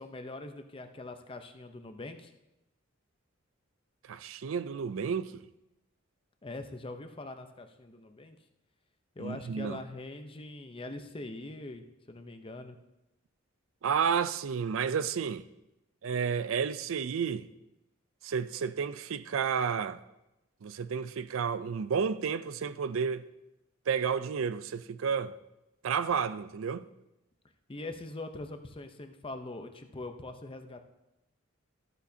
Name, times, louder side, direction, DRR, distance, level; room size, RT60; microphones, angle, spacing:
voice 1, 0.0-2.3 6.4-8.4 9.2-12.8 27.7-30.8, left 2 dB, 25° left, 0.7 m, -42 dB
voice 2, 4.1-5.3 9.2-9.8 13.8-15.4 16.0-17.5 18.2-20.0 20.6-23.2 23.9-25.3 25.8-26.8, right 6 dB, 75° right, 0.4 m, -31 dB
14.5 x 8.5 x 2.8 m
head